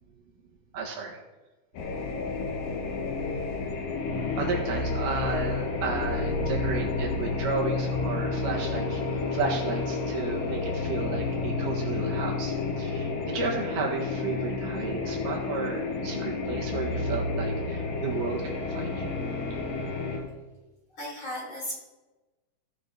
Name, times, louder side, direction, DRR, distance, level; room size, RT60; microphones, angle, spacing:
voice 1, 0.7-1.2 4.4-9.0 9.3-19.1, right 4 dB, 75° right, 0 dB, 3.0 m, -33 dB
sound 1, 1.7-20.2, left 3 dB, 85° left, 3.2 m, -30 dB
voice 2, 21.0-21.8, left 1 dB, 35° left, -5 dB, 4.0 m, -35 dB
16.0 x 6.3 x 4.0 m, 1.1 s
omnidirectional pair, 3.9 m